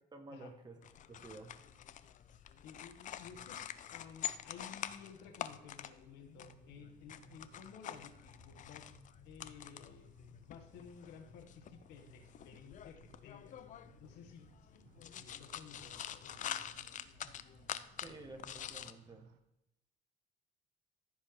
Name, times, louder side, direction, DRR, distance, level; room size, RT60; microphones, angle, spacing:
voice 1, 0.1-0.8 1.1-1.5 18.0-19.3, right 2 dB, 25° right, 5 dB, 1.5 m, -51 dB
sound 1, 0.8-18.9, left 10 dB, 50° left, 0.6 m, -47 dB
voice 2, 2.6-8.9 9.2-10.1 10.4-13.6 14.0-14.9 15.2-16.7, left 7 dB, 85° left, 4 dB, 1.6 m, -55 dB
sound 2, 6.3-19.4, right 8 dB, 85° right, 0.9 m, -64 dB
14.0 x 5.3 x 3.8 m, 0.87 s
cardioid pair, 110°, 17 cm